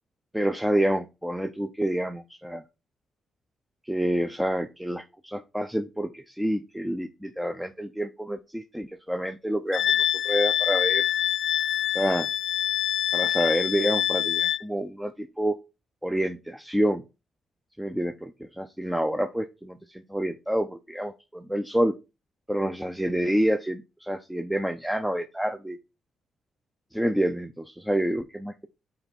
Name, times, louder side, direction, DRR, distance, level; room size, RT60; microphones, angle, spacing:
voice 1, 0.3-2.6 3.9-9.9 10.2-11.1 11.9-12.3 13.1-15.6 16.0-17.0 17.8-21.9 22.5-25.8 26.9-28.7, equal, 5° right, 7 dB, 0.6 m, -28 dB
Wind instrument woodwind instrument, 9.7-14.6, left 11 dB, 75° left, 0.3 m, -25 dB
5.6 x 4.6 x 4.2 m, 0.28 s
cardioid pair, 85°, 0 cm